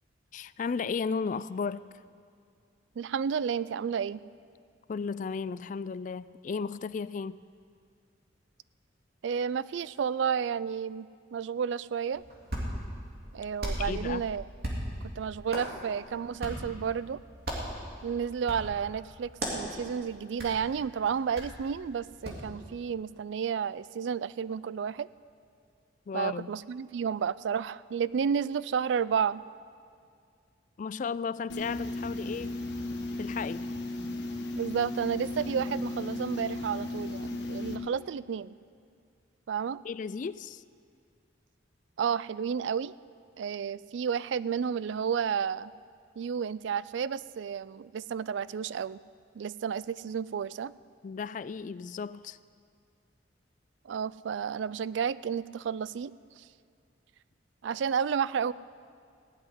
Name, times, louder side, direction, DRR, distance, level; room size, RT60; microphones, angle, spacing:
voice 1, 0.3-1.8 4.9-7.4 13.8-14.3 26.1-26.5 30.8-32.5 33.2-33.6 39.8-40.6 51.0-52.4, left 5 dB, 45° left, 17 dB, 0.3 m, -34 dB
voice 2, 3.0-4.2 9.2-11.1 11.3-12.2 13.3-14.4 15.2-17.2 18.0-25.1 26.1-29.4 34.6-38.6 39.5-39.8 42.0-43.0 43.4-45.7 46.2-49.0 49.4-50.7 53.9-56.4 57.6-58.5, right 7 dB, 70° right, 19 dB, 0.3 m, -31 dB
Hands, 12.1-22.5, equal, 55° right, 3.0 m, -39 dB
sound 1, 31.5-37.8, left 2 dB, 65° left, 1.3 m, -35 dB
16.0 x 7.9 x 9.8 m, 2.3 s
head